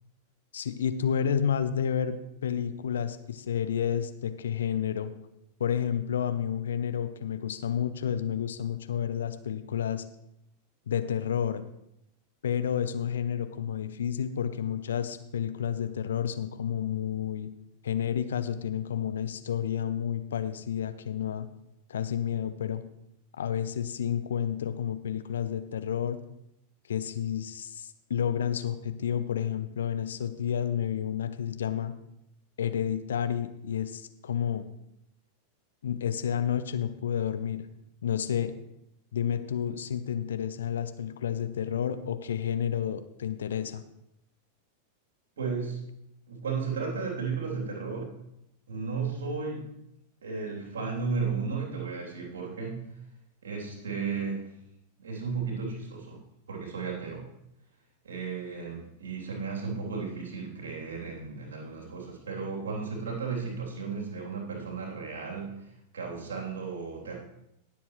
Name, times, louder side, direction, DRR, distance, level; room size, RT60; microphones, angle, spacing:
voice 1, 0.5-5.1 5.6-10.0 10.9-11.7 12.4-17.5 17.8-21.5 21.9-22.8 23.4-26.2 26.9-31.9 32.6-34.7 35.8-37.7 38.0-38.5 39.1-43.8, left 9 dB, 65° left, 11 dB, 0.7 m, -30 dB
voice 2, 45.4-45.8 46.3-48.1 48.7-49.7 50.2-52.9 53.4-54.5 55.0-56.2 56.5-57.2 58.0-65.5 65.9-67.2, right 5 dB, 65° right, -1 dB, 3.3 m, -34 dB
19.0 x 7.2 x 3.2 m, 0.81 s
figure-of-eight pair, 90°, 0 cm